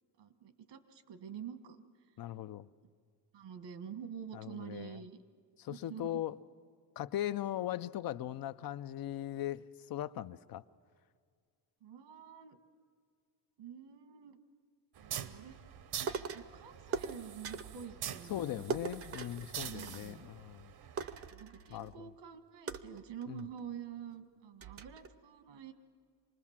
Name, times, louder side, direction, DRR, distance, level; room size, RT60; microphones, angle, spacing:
voice 1, 0.2-1.8 3.3-5.2 5.7-6.2 11.8-12.6 13.6-14.4 15.0-15.6 16.3-19.0 19.6-20.3 21.3-25.7, right 8 dB, 80° right, 1.7 m, -47 dB
voice 2, 2.2-2.7 4.3-5.0 5.6-6.4 7.0-10.6 18.3-20.7 21.7-22.1 23.3-23.4, left 12 dB, 55° left, 0.5 m, -39 dB
sound 1, 15.0-21.3, right 9 dB, 60° right, 0.9 m, -45 dB
sound 2, 16.1-16.5 16.9-17.8 18.7-20.3 20.6-20.7 21.0-22.0 22.7-23.6 24.1-24.2 24.6-25.1, right 6 dB, 35° right, 0.6 m, -41 dB
26.5 x 20.0 x 7.3 m
cardioid pair, 145°, 43 cm